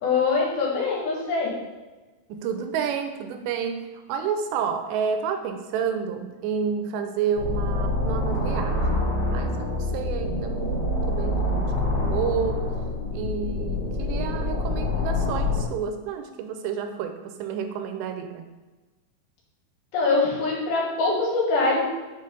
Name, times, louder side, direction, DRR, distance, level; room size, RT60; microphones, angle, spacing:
voice 1, 0.0-1.5 19.9-21.8, left 3 dB, 70° left, -3 dB, 3.0 m, -23 dB
voice 2, 2.3-8.8 9.3-12.7 13.1-18.4, right 7 dB, 90° right, 6 dB, 2.9 m, -30 dB
sound 1, 7.4-15.7, left 2 dB, 45° left, 2.7 m, -26 dB
7.5 x 4.1 x 5.1 m, 1.2 s
omnidirectional pair, 4.9 m